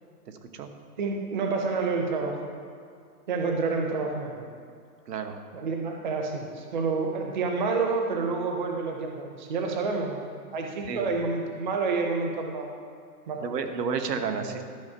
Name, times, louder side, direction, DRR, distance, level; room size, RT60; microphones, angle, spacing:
voice 1, 1.0-2.5 3.3-4.5 5.5-12.7 13.3-13.5 14.4-14.6, right 4 dB, 30° right, 2 dB, 0.6 m, -29 dB
voice 2, 5.1-5.4 10.9-11.1 13.4-14.6, right 5 dB, 85° right, 6 dB, 1.2 m, -31 dB
12.5 x 5.1 x 5.5 m, 2.2 s
hypercardioid pair, 175°, 48 cm